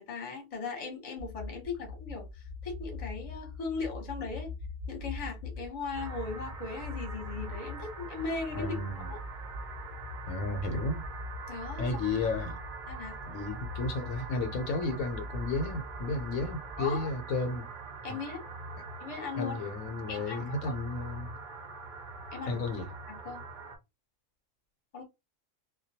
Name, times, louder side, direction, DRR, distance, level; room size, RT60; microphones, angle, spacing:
voice 1, 0.0-4.5 4.9-9.2 11.5-11.9 12.9-13.2 16.8-17.1 18.0-18.4 19.0-19.6 20.1-20.7 22.3-22.6 23.1-23.4 24.9-25.0, left 4 dB, 30° left, 0.8 m, -38 dB
sound 1, 1.2-17.1, left 3 dB, 65° left, 0.4 m, -42 dB
sound 2, 5.9-23.8, right 4 dB, 50° right, 0.6 m, -44 dB
voice 2, 8.6-9.1 10.3-11.1 11.8-12.6 13.3-17.7 18.1-18.2 19.4-21.4 22.5-22.9, left 3 dB, 85° left, 1.0 m, -33 dB
2.2 x 2.2 x 2.7 m
omnidirectional pair, 1.4 m